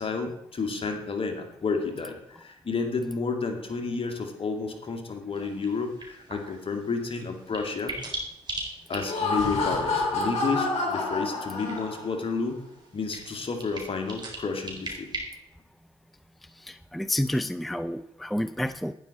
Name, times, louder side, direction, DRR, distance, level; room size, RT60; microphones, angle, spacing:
voice 1, 0.0-7.9 8.9-12.6 12.9-15.1, left 4 dB, 50° left, 5 dB, 2.4 m, -31 dB
sound 1, 5.3-15.2, right 2 dB, 40° right, 4.3 m, -41 dB
Laughter, 8.9-12.2, left 3 dB, 65° left, 4.8 m, -28 dB
voice 2, 16.6-18.9, left 1 dB, ahead, 12 dB, 0.5 m, -29 dB
12.0 x 9.6 x 4.3 m, 0.87 s
supercardioid pair, 50°, 12 cm